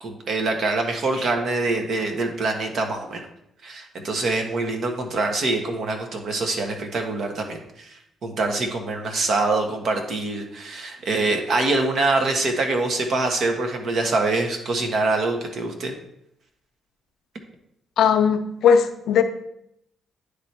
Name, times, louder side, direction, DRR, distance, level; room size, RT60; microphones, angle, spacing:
voice 1, 0.0-3.2 3.6-15.9, right 3 dB, 60° right, 3 dB, 1.2 m, -24 dB
voice 2, 18.0-19.2, left 7 dB, 75° left, 7 dB, 0.6 m, -18 dB
9.8 x 3.3 x 4.4 m, 0.77 s
cardioid pair, 90°, 0 cm